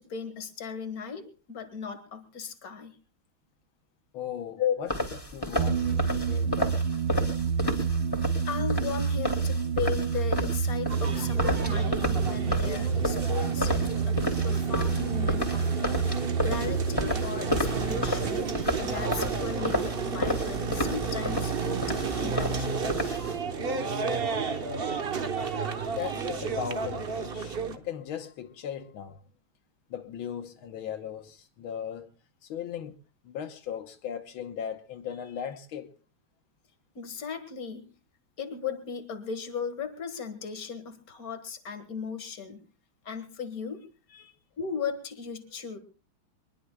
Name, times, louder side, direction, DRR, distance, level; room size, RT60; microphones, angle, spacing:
voice 1, 0.0-3.0 4.6-4.8 7.7-7.8 8.4-18.4 18.8-22.8 37.0-37.9 38.4-42.6 43.0-43.9 44.6-45.8, left 6 dB, 45° left, 2.1 m, -36 dB
voice 2, 4.1-4.9 5.3-6.9 8.1-8.2 26.0-29.2 29.9-32.1 32.4-33.0 33.2-35.9 44.1-44.3, left 8 dB, 80° left, 1.8 m, -38 dB
sound 1, 4.9-23.4, left 1 dB, 10° left, 2.8 m, -32 dB
sound 2, 5.6-18.8, right 6 dB, 75° right, 1.7 m, -29 dB
sound 3, 10.9-27.8, right 5 dB, 40° right, 0.9 m, -32 dB
23.0 x 21.0 x 2.3 m
omnidirectional pair, 2.3 m